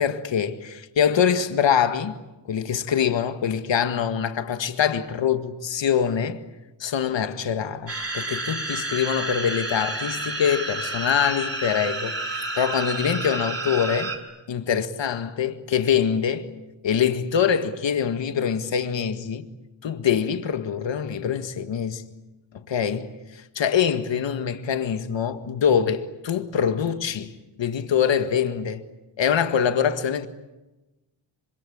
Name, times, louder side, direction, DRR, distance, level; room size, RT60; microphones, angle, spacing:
voice 1, 0.0-2.2 2.5-6.4 6.8-14.1 14.5-16.5 16.8-19.5 19.8-22.0 22.7-27.3 27.6-28.8 29.2-30.3, left 8 dB, 60° left, 1.9 m, -24 dB
sound 1, 7.9-14.2, right 2 dB, 30° right, 5.4 m, -30 dB
26.0 x 26.0 x 8.7 m
wide cardioid pair, 160°, 49 cm